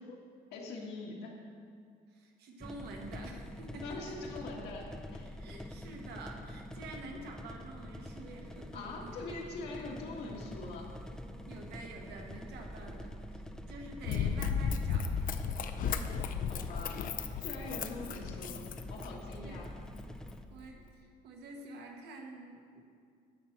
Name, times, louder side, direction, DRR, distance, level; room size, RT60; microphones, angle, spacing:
voice 1, 0.5-1.3 3.8-5.3 8.7-10.9 16.5-17.1 17.4-19.7, left 3 dB, 75° left, -2 dB, 1.8 m, -43 dB
voice 2, 2.1-4.2 5.2-9.2 11.5-13.4 13.7-15.1 17.9-18.3 19.4-19.7 20.5-22.8, right 2 dB, 75° right, 2 dB, 1.3 m, -48 dB
sound 1, 2.6-20.4, left 1 dB, 5° left, 0.4 m, -46 dB
Run, 14.1-19.3 19.9-20.0, left 7 dB, 55° left, 0.5 m, -34 dB
9.9 x 4.4 x 7.2 m, 2.3 s
cardioid pair, 110°, 17 cm